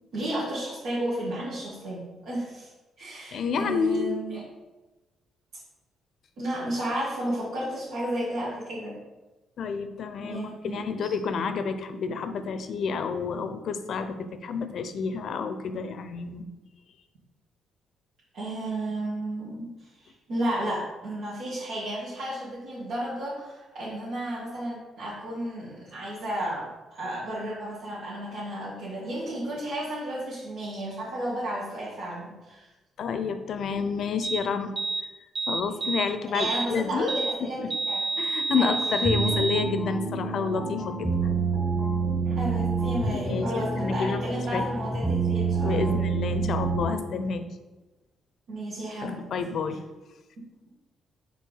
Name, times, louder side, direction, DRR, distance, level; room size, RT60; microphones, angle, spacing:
voice 1, 0.1-2.7 3.0-4.4 6.4-9.0 10.2-11.2 18.3-19.7 20.0-32.7 36.3-37.6 37.9-38.1 38.5-38.7 39.2-39.3 42.2-46.0 48.5-49.2, right 1 dB, 80° right, -10 dB, 2.0 m, -33 dB
voice 2, 3.3-4.2 9.6-16.5 33.0-34.7 35.5-37.1 37.6-37.7 38.2-41.1 43.1-44.2 44.5-44.6 45.6-47.4 49.0-49.8, left 5 dB, 65° left, 9 dB, 0.6 m, -29 dB
sound 1, 34.2-34.4 34.8-35.0 35.3-36.1 36.4-36.7 37.1-37.4 37.7-39.6, right 3 dB, 45° right, 0.6 m, -29 dB
sound 2, 39.0-47.1, right 4 dB, 20° right, 1.6 m, -28 dB
4.6 x 4.4 x 5.5 m, 1.1 s
cardioid pair, 90°, 0 cm